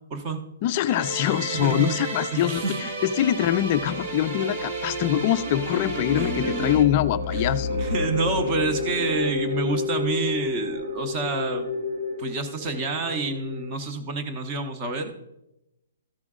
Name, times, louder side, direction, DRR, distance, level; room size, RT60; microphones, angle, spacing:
voice 1, 0.6-7.9, left 12 dB, 25° left, 12 dB, 0.3 m, -24 dB
sound 1, 0.9-6.8, right 3 dB, 50° right, 1.4 m, -33 dB
voice 2, 1.6-2.0 2.3-2.8 5.7-5.8 6.2-6.8 7.3-7.4 7.8-11.7 12.2-15.1, right 3 dB, 20° right, 6 dB, 0.7 m, -28 dB
sound 2, 3.6-13.8, left 3 dB, 80° right, 1.4 m, -30 dB
14.0 x 5.0 x 3.7 m, 0.88 s
hypercardioid pair, 175°, 0 cm